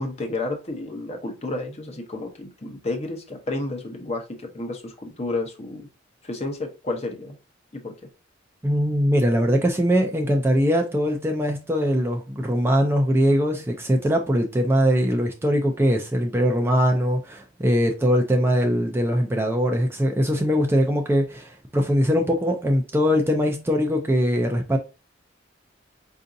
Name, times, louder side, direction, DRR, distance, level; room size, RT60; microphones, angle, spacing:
voice 1, 0.0-5.9 6.2-7.4 7.7-7.9, left 2 dB, 35° left, 0.8 m, -31 dB
voice 2, 8.6-24.8, equal, 15° right, 0.4 m, -21 dB
4.7 x 2.6 x 2.6 m
head